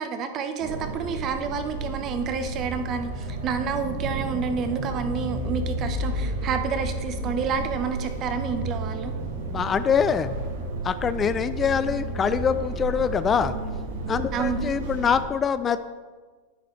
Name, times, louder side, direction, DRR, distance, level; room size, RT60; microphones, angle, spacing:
voice 1, 0.0-9.2 14.3-14.7, right 6 dB, 40° right, 8 dB, 1.0 m, -29 dB
sound 1, 0.6-15.2, right 2 dB, 75° right, 2.2 m, -32 dB
voice 2, 9.5-10.3 10.8-13.6 14.1-15.8, left 7 dB, 25° left, 12 dB, 0.4 m, -24 dB
10.5 x 9.1 x 3.2 m, 1.4 s
hypercardioid pair, 115°, 0 cm